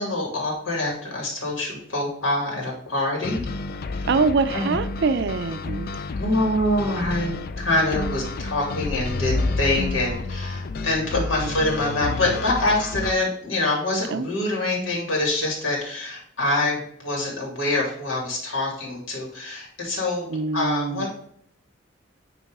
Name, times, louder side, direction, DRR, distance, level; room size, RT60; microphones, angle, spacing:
voice 1, 0.0-3.4 4.0-4.1 4.5-4.7 6.2-20.3 20.5-21.1, left 2 dB, 80° left, 2.3 m, -25 dB
sound 1, 3.2-13.1, left 3 dB, 50° left, 0.4 m, -30 dB
voice 2, 4.1-5.9 11.2-11.7 14.1-14.3 14.6-15.0 20.3-21.1, right 4 dB, 60° right, 0.5 m, -25 dB
9.3 x 3.1 x 3.6 m
head